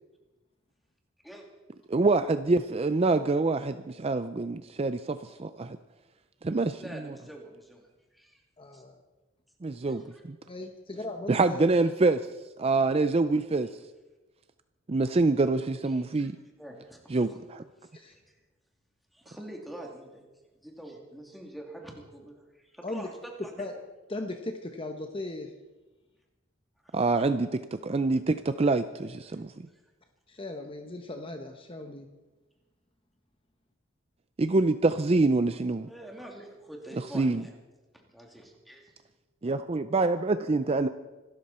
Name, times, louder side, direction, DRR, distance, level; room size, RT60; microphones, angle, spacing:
voice 1, 1.9-5.8 6.4-7.1 9.6-10.4 11.3-12.2 12.6-13.7 14.9-16.4 17.1-17.6 26.9-29.7 34.4-35.9 37.1-37.4 39.4-40.9, right 3 dB, 30° right, 11 dB, 0.4 m, -26 dB
voice 2, 6.8-7.9 8.1-8.4 8.7-8.8 9.9-10.2 15.8-16.3 16.6-17.4 17.8-18.2 19.1-20.2 20.6-23.7 26.8-27.0 35.9-37.5 37.9-38.9, right 1 dB, ahead, 0 dB, 2.7 m, -46 dB
voice 3, 8.6-9.0 10.5-11.7 17.9-18.2 22.8-23.1 23.4-23.7 24.1-25.5 30.3-32.1, left 2 dB, 25° left, 5 dB, 1.0 m, -37 dB
25.5 x 13.0 x 4.3 m, 1.2 s
head